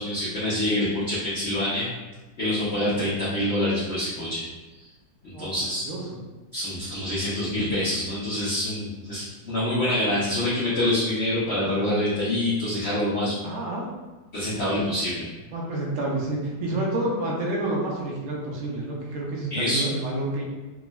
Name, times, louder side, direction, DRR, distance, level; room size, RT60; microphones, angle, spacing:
voice 1, 0.0-1.9 2.4-4.5 4.8-4.9 5.2-5.9 6.5-13.4 14.3-15.3 19.5-19.8, left 1 dB, 80° left, -9 dB, 0.6 m, -26 dB
voice 2, 5.3-6.0 13.4-13.9 15.5-20.4, right 2 dB, 70° right, -3 dB, 0.7 m, -29 dB
3.6 x 2.0 x 2.2 m, 1.2 s
omnidirectional pair, 2.0 m